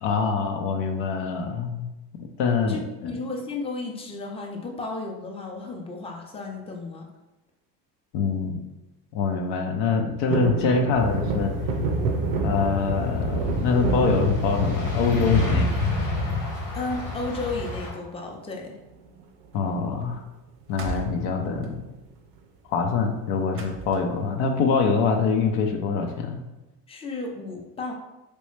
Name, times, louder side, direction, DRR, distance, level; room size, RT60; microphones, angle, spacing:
voice 1, 0.0-1.9 2.4-2.8 3.0-3.2 8.1-8.6 9.1-11.5 12.4-15.7 19.5-20.2 20.7-21.9 22.7-26.4, left 5 dB, 65° left, 3 dB, 0.7 m, -24 dB
voice 2, 2.7-7.1 16.7-18.8 26.9-27.9, left 3 dB, 10° left, 1 dB, 0.6 m, -33 dB
sound 1, 10.3-16.5 16.9-17.5 18.8-19.2 19.5-19.6 19.8-20.1 21.0-21.9 22.4-22.5, right 5 dB, 85° right, 0.6 m, -30 dB
sound 2, 10.9-17.9, left 3 dB, 85° left, 1.4 m, -28 dB
sound 3, 19.7-19.8 20.0-20.3 20.6-24.4, right 2 dB, 25° right, 0.6 m, -38 dB
3.1 x 3.0 x 3.1 m, 1.0 s
hypercardioid pair, 65°, 47 cm